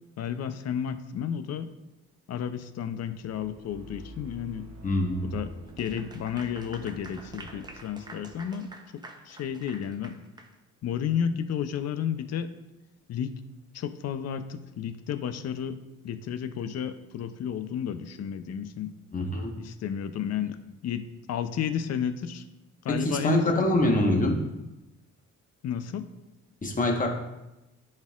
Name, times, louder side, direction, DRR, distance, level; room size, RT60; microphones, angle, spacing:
voice 1, 0.2-1.7 2.3-4.7 5.2-5.5 5.8-8.7 8.9-10.1 10.8-12.5 13.1-13.4 13.7-15.8 16.0-18.9 19.6-20.6 20.8-22.4 22.8-23.7 25.6-26.1, left 8 dB, 55° left, 10 dB, 0.6 m, -32 dB
sound 1, 3.1-8.4, right 2 dB, 65° right, 0.9 m, -48 dB
voice 2, 4.8-5.3 19.1-19.5 22.9-24.4 26.6-27.1, left 1 dB, 25° left, 1 dB, 1.3 m, -25 dB
Clapping / Applause, 5.7-10.5, right 2 dB, 15° right, 0.8 m, -47 dB
10.5 x 4.4 x 2.4 m, 0.98 s
cardioid pair, 90°, 30 cm